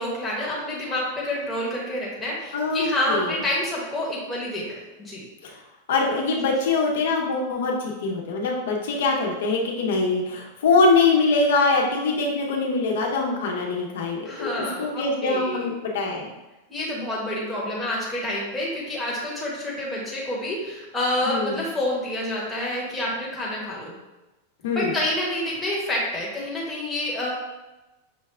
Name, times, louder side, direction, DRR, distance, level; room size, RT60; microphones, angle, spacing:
voice 1, 0.0-4.7 5.0-5.3 14.2-15.6 16.7-23.9 24.6-27.3, left 1 dB, 5° left, -6 dB, 1.0 m, -28 dB
voice 2, 2.5-3.3 5.4-5.6 5.9-16.3 21.2-21.6 24.6-24.9, left 3 dB, 75° left, -1 dB, 0.9 m, -23 dB
6.0 x 2.4 x 3.3 m, 1.1 s
supercardioid pair, 170°, 0 cm